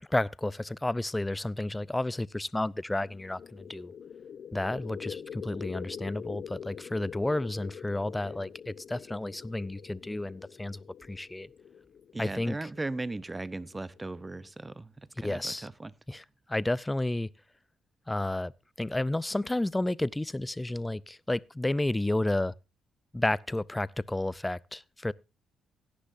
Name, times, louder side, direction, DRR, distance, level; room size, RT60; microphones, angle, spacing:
voice 1, 0.0-3.9 4.5-11.5 12.2-12.7 15.2-15.7 16.1-17.3 18.1-18.5 18.8-22.5 23.1-25.1, left 1 dB, 10° left, 0.5 m, -31 dB
sound 1, 3.0-14.5, left 7 dB, 55° left, 0.7 m, -45 dB
voice 2, 12.1-15.9, right 2 dB, 20° right, 0.8 m, -37 dB
17.0 x 10.0 x 2.6 m
cardioid pair, 90°, 0 cm